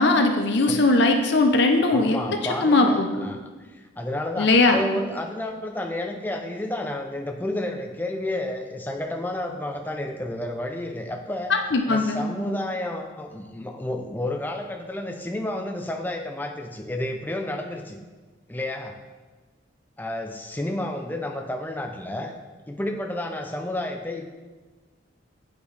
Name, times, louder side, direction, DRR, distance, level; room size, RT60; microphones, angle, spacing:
voice 1, 0.0-2.2 2.6-3.1 4.4-4.8 11.5-12.2, left 2 dB, 60° left, 4 dB, 0.6 m, -19 dB
voice 2, 1.9-3.4 3.7-11.5 11.9-18.0 18.5-19.0 20.0-22.3 22.7-24.3, left 1 dB, 10° left, 4 dB, 0.4 m, -31 dB
8.2 x 5.1 x 3.3 m, 1.3 s
head